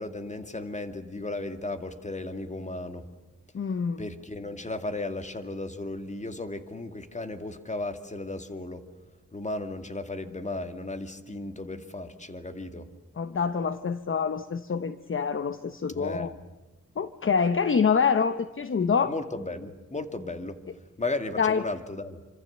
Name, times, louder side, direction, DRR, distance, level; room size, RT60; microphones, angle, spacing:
voice 1, 0.0-3.0 4.0-8.8 9.3-12.9 15.9-16.4 19.1-20.6 21.0-22.2, left 2 dB, 25° left, 8 dB, 2.2 m, -35 dB
voice 2, 3.5-4.0 13.2-16.3 17.0-19.1 21.4-21.6, left 6 dB, 45° left, 11 dB, 0.9 m, -26 dB
27.5 x 25.5 x 8.0 m, 1.2 s
wide cardioid pair, 115°, 29 cm